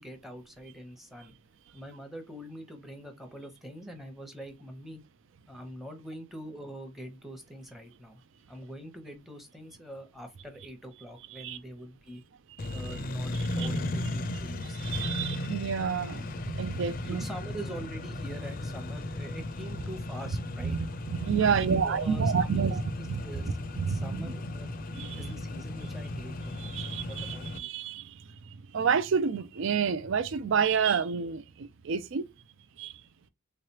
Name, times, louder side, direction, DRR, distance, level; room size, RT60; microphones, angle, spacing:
voice 1, 0.0-1.3 1.7-5.0 5.5-8.2 8.5-12.2 12.7-14.8 17.0-20.8 21.4-24.7 25.2-27.7, equal, ahead, 0.8 m, -44 dB
Accelerating revving vroom, 12.6-27.6, left 1 dB, 40° left, 0.5 m, -36 dB
voice 2, 12.6-13.0 13.6-13.7 14.8-17.2 20.6-22.8 23.1-23.2 23.8-24.3 24.9-25.3 26.6-28.2 28.7-32.3 32.8-32.9, right 6 dB, 60° right, 0.4 m, -29 dB
3.7 x 3.2 x 2.8 m
head